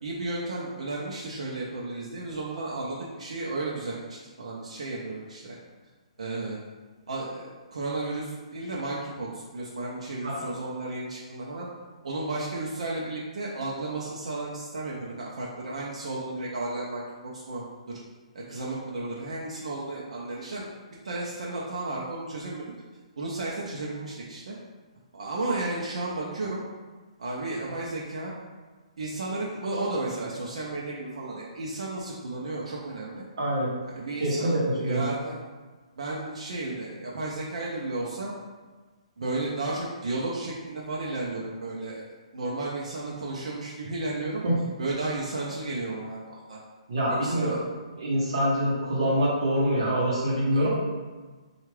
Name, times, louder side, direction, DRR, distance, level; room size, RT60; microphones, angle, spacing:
voice 1, 0.0-5.6 6.2-6.6 7.1-11.7 12.0-17.6 18.3-20.6 21.0-22.7 23.2-24.5 25.1-26.6 27.2-28.3 29.0-33.2 33.9-35.3 36.0-38.3 39.2-42.0 42.3-44.4 44.8-46.6 47.1-47.6 50.5-50.7, right 2 dB, 70° right, -4 dB, 0.6 m, -33 dB
voice 2, 33.4-33.7 34.2-35.0 44.4-44.6 46.9-47.6 48.0-50.7, equal, 50° right, -5 dB, 0.9 m, -25 dB
4.4 x 2.4 x 3.2 m, 1.3 s
hypercardioid pair, 175°, 4 cm